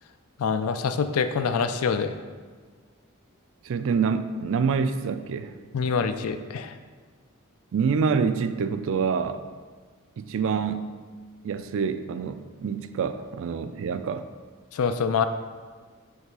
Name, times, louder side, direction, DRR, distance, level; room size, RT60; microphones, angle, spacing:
voice 1, 0.4-2.2 5.7-6.7 14.7-15.3, left 5 dB, 75° left, 10 dB, 0.4 m, -25 dB
voice 2, 3.6-5.5 7.7-9.4 10.2-10.9 11.4-14.2, right 5 dB, 60° right, 11 dB, 0.4 m, -26 dB
5.4 x 3.8 x 4.7 m, 1.5 s
head